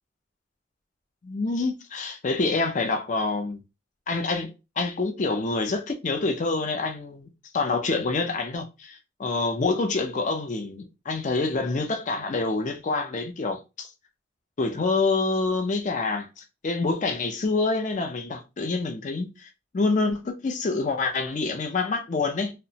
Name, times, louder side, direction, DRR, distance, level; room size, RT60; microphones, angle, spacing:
voice 1, 1.2-3.6 4.1-7.3 7.5-13.9 14.6-22.5, left 3 dB, 40° left, 0.4 m, -27 dB
2.8 x 2.1 x 2.7 m
head